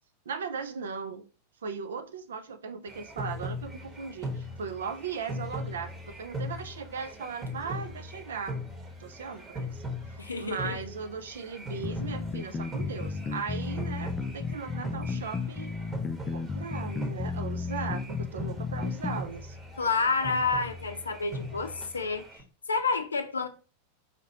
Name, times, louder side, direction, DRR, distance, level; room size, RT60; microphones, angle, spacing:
voice 1, 0.3-1.3 1.6-8.6 9.0-9.8 10.4-15.7 16.3-19.6, right 6 dB, 65° right, 0.5 m, -38 dB
sound 1, 2.9-22.4, left 1 dB, 15° right, 1.0 m, -40 dB
voice 2, 10.2-10.8 19.8-22.4 22.7-23.5, left 4 dB, 75° left, 0.5 m, -29 dB
sound 2, 11.8-19.2, left 4 dB, 20° left, 0.4 m, -33 dB
4.3 x 2.8 x 2.7 m
figure-of-eight pair, 90°, 0 cm